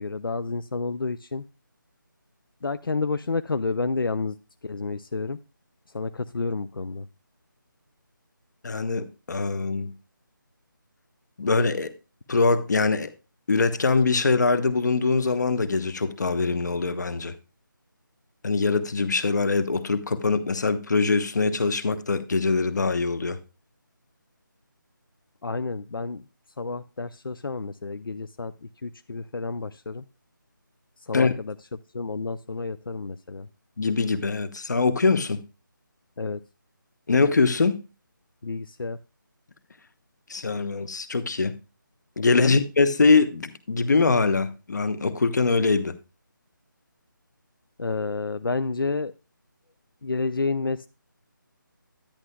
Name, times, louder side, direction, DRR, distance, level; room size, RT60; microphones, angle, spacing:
voice 1, 0.0-1.4 2.6-4.4 4.6-5.4 5.9-7.1 25.4-26.3 26.6-30.1 31.0-31.6 31.9-33.5 36.2-36.4 38.4-39.0 42.4-42.6 47.8-49.1 50.0-50.9, left 3 dB, 85° left, 0.5 m, -30 dB
voice 2, 8.6-9.9 11.4-11.9 12.3-13.1 13.5-17.3 18.4-23.4 31.1-31.3 33.8-35.4 37.1-37.7 40.3-41.5 42.2-45.9, left 4 dB, 55° left, 1.0 m, -23 dB
10.5 x 9.9 x 2.2 m
figure-of-eight pair, 160°, 11 cm